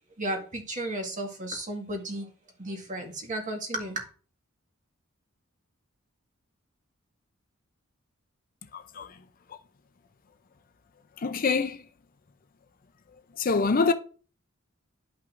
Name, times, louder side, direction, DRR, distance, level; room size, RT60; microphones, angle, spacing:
voice 1, 0.2-2.3 2.6-4.0, right 1 dB, 35° right, 1.7 m, -33 dB
voice 2, 8.7-9.2 9.5-9.6 11.2-11.8 13.3-13.9, left 4 dB, 45° left, 0.5 m, -26 dB
10.5 x 5.6 x 2.6 m
head